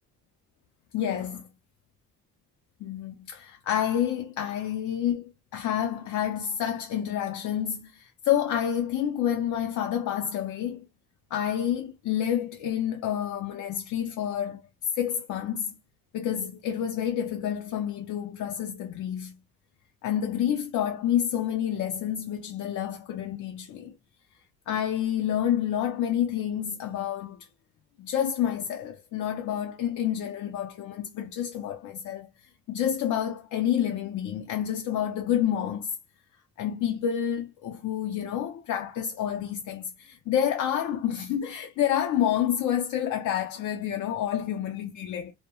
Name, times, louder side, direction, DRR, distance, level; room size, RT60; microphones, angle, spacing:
voice 1, 0.9-1.5 2.8-10.8 11.3-14.6 14.9-15.8 16.1-19.4 20.0-23.9 24.7-27.4 28.0-32.3 32.7-36.0 36.6-45.3, left 10 dB, 70° left, 0.5 m, -29 dB
2.2 x 2.1 x 2.8 m
cardioid pair, 90°, 30 cm